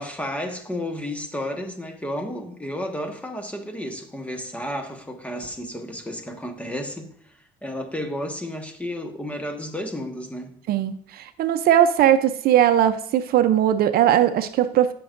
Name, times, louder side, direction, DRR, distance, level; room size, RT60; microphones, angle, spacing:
voice 1, 0.0-7.1 7.6-10.6, left 1 dB, 10° left, 1.4 m, -32 dB
voice 2, 10.7-14.9, right 10 dB, 65° right, 0.6 m, -19 dB
17.0 x 6.1 x 2.6 m
cardioid pair, 110°, 17 cm